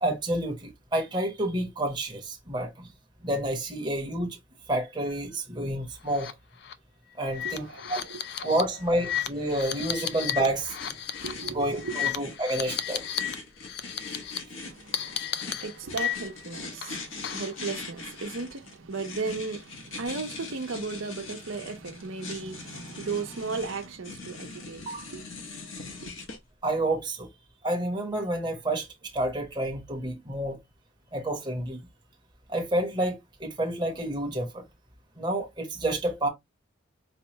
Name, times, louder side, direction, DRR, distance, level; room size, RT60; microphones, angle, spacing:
voice 1, 0.0-2.9 3.2-4.4 4.7-6.3 7.2-7.6 7.9-8.0 8.4-10.8 11.5-13.0 24.9-25.1 26.6-27.3 27.6-30.6 31.1-31.9 32.5-34.6 35.2-36.3, right 1 dB, 20° right, 0.8 m, -29 dB
sound 1, 6.1-6.3 6.6-6.7 7.3-13.3 13.6-14.4 14.9-16.4 16.8-17.6, left 10 dB, 55° left, 0.3 m, -33 dB
voice 2, 7.3-8.5 9.7-9.8 11.2-11.9 14.6-26.1, right 4 dB, 80° right, 0.8 m, -36 dB
sound 2, 9.1-26.4, left 3 dB, 75° left, 1.0 m, -42 dB
4.2 x 2.2 x 2.9 m
head